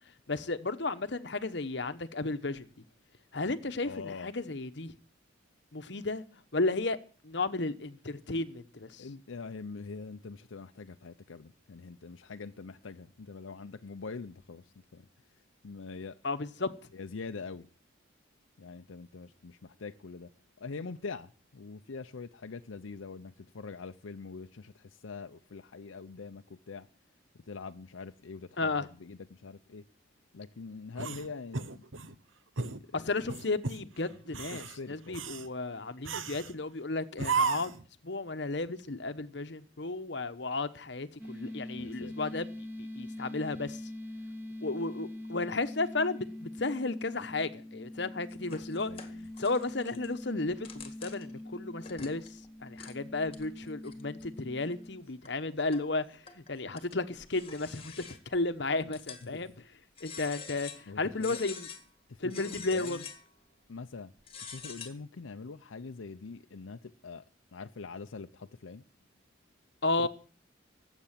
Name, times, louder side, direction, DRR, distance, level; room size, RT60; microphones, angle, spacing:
voice 1, 0.3-2.7 3.3-4.9 5.7-6.2 6.5-7.0 7.2-9.1 16.2-16.7 28.6-28.9 32.9-37.7 38.0-43.8 44.6-48.9 49.4-52.3 52.6-59.5 60.0-61.7 62.2-63.0 69.8-70.1, left 3 dB, 60° left, 1.0 m, -33 dB
voice 2, 3.8-4.3 9.0-15.1 15.6-16.2 16.9-17.7 18.6-20.3 20.6-26.9 27.5-29.8 30.3-31.8 32.6-33.1 34.3-35.3 41.7-42.2 48.9-49.3 59.2-59.5 60.9-61.4 62.1-63.1 63.7-64.1 64.5-67.2 67.5-68.8 70.0-70.1, left 4 dB, 85° left, 0.6 m, -44 dB
sound 1, 31.0-32.1 32.6-32.8 33.3-33.8 34.3-34.8 35.1-35.5 36.0-36.5 37.2-37.8, right 5 dB, 80° right, 1.0 m, -33 dB
sound 2, 41.2-55.0, left 1 dB, 10° right, 2.6 m, -43 dB
sound 3, 48.3-50.1 50.5-51.4 51.8-52.5 52.8-52.9 53.3-54.3 54.8-54.9 55.2-55.9 56.3-58.4 58.9-59.5 60.0-60.9 61.2-61.8 62.3-63.3 64.2-64.9, left 6 dB, 30° left, 1.9 m, -46 dB
18.5 x 8.2 x 7.4 m
head